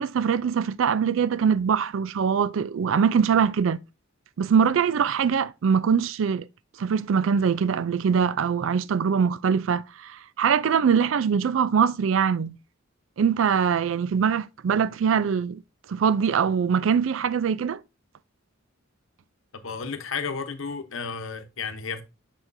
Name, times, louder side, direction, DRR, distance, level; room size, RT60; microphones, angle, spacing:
voice 1, 0.0-3.8 4.4-6.5 6.8-12.6 13.2-15.6 15.9-17.8, right 7 dB, 70° right, 0.4 m, -23 dB
voice 2, 19.5-22.0, left 5 dB, 70° left, 0.9 m, -32 dB
6.6 x 5.9 x 2.6 m
head